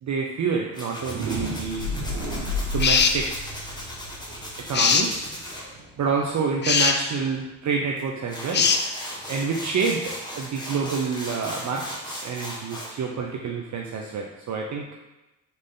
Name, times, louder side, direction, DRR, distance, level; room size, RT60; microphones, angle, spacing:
voice 1, 0.0-1.9 2.7-3.5 4.7-5.2 6.0-8.7 9.3-14.8, right 5 dB, 45° right, 0 dB, 0.6 m, -28 dB
Tools, 0.7-5.6 8.0-8.1 8.3-12.9, equal, 10° left, 1.4 m, -37 dB
sound 1, 0.9-6.8, left 1 dB, 75° right, 1.2 m, -33 dB
sound 2, 2.8-3.2 4.7-5.1 6.6-7.0 8.5-8.8, left 6 dB, 30° left, 0.4 m, -20 dB
4.1 x 3.1 x 3.7 m, 0.99 s
supercardioid pair, 55°, 40 cm